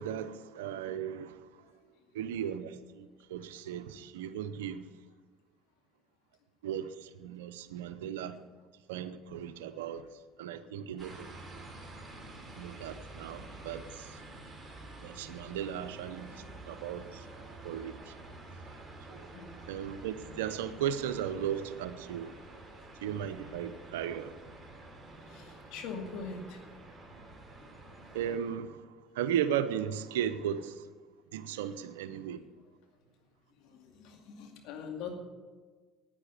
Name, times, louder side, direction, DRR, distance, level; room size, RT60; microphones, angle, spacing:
voice 1, 0.0-1.5 2.1-4.8 6.6-8.4 8.9-10.1 10.4-11.3 12.6-14.2 15.0-17.3 17.6-18.1 19.1-19.3 19.7-22.3 23.0-24.4 28.1-30.9 31.3-32.4, right 9 dB, 85° right, 0.7 m, -36 dB
sound 1, 11.0-28.4, right 2 dB, 15° right, 3.5 m, -49 dB
voice 2, 25.2-26.6 27.6-27.7 32.5-32.6 33.6-35.1, left 5 dB, 70° left, 2.2 m, -43 dB
9.8 x 9.2 x 9.5 m
hypercardioid pair, 75°, 0 cm